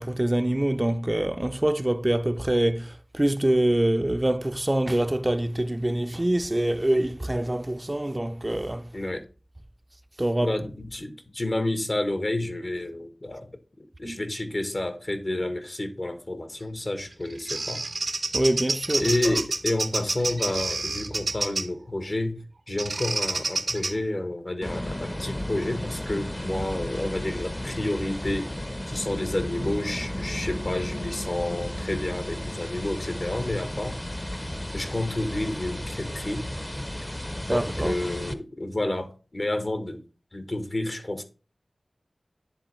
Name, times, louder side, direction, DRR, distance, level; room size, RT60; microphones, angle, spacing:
voice 1, 0.0-8.9 10.2-10.6 14.0-14.2 18.3-19.3 37.5-38.0, right 1 dB, 25° right, 0.4 m, -25 dB
voice 2, 8.9-9.3 10.4-13.5 14.0-17.8 19.0-28.5 28.9-34.0 34.7-36.5 37.5-40.0 40.3-41.2, left 1 dB, 50° left, 1.1 m, -30 dB
Bird vocalization bird call bird song, 17.0-21.8 22.8-23.9, right 3 dB, 75° right, 0.6 m, -29 dB
sound 1, 24.6-38.3, left 1 dB, 20° left, 0.7 m, -33 dB
10.0 x 3.7 x 3.1 m
wide cardioid pair, 40°, 0 cm